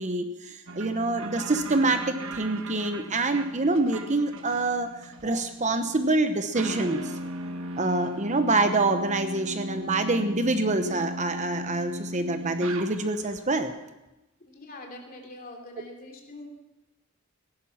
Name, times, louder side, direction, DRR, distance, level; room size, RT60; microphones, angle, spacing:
voice 1, 0.0-7.1 7.8-13.7, right 2 dB, 35° right, 8 dB, 0.9 m, -26 dB
sound 1, 0.7-13.4, right 1 dB, 65° right, 1.3 m, -37 dB
voice 2, 14.5-16.5, left 1 dB, 40° left, 2 dB, 3.0 m, -44 dB
16.5 x 11.5 x 5.8 m, 1.0 s
head